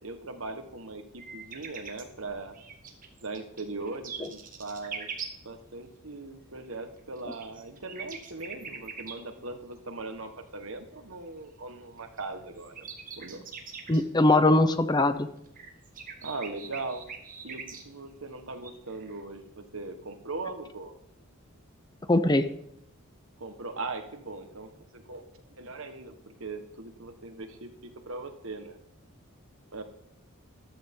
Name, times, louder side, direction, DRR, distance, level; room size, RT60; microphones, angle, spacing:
voice 1, 0.0-2.5 3.2-5.1 5.4-12.9 13.2-13.4 16.2-17.0 17.4-20.9 23.4-25.2 25.6-28.8 29.7-29.8, right 3 dB, 70° right, 7 dB, 1.5 m, -39 dB
sound 1, 1.2-5.4 7.0-9.2 12.2-12.3 12.6-14.0 15.5-18.2 18.6-19.2, right 6 dB, 40° right, 1.7 m, -42 dB
voice 2, 13.9-15.3 22.1-22.5, left 2 dB, 20° left, 11 dB, 0.6 m, -21 dB
14.0 x 12.0 x 3.8 m, 0.75 s
head